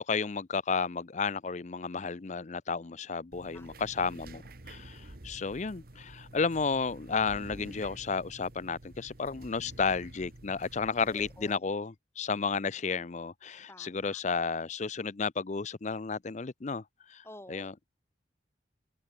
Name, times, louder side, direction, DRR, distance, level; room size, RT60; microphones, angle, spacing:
voice 1, 0.0-16.8 17.1-17.7, left 5 dB, 40° left, 0.5 m, -32 dB
sound 1, 3.3-11.5, right 1 dB, 50° right, 1.7 m, -49 dB
voice 2, 11.0-11.6 13.7-14.2 17.2-17.9, left 1 dB, 15° left, 2.4 m, -51 dB
open air
head